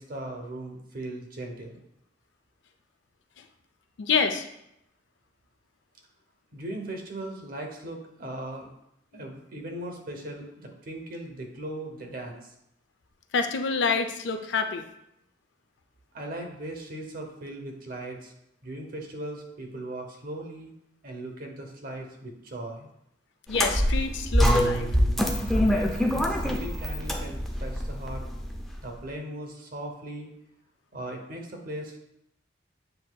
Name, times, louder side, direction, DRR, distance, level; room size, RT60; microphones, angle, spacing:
voice 1, 0.0-1.8 6.5-8.7 9.1-12.5 16.1-18.3 18.6-20.7 21.0-22.9 25.4-28.3 28.8-30.3 30.9-32.0, right 1 dB, 50° right, 3 dB, 0.8 m, -38 dB
voice 2, 4.0-4.4 9.1-9.2 13.3-14.8 23.5-24.9, left 5 dB, 65° left, 7 dB, 0.4 m, -27 dB
sound 1, 23.5-28.8, equal, ahead, 0.3 m, -25 dB
7.7 x 2.7 x 2.2 m, 0.80 s
head